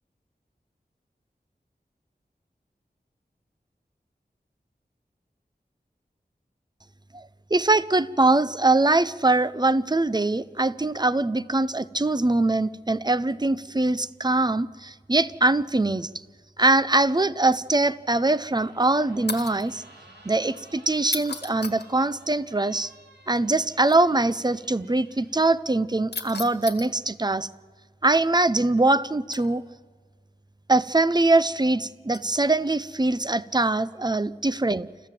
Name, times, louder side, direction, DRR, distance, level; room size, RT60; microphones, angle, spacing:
voice 1, 7.1-16.1 16.6-19.8 20.2-22.9 23.3-27.5 28.0-29.6 30.7-34.9, right 2 dB, 25° right, 16 dB, 0.6 m, -22 dB
sound 1, 18.4-25.4, right 1 dB, 85° right, 2.9 m, -54 dB
sound 2, 19.3-19.7 21.0-21.9 23.8-24.0 26.1-26.9 29.3-29.7 32.1-32.4 33.3-33.5, left 4 dB, 75° left, 1.5 m, -35 dB
29.5 x 14.0 x 7.6 m, 1.5 s
wide cardioid pair, 45°, 17 cm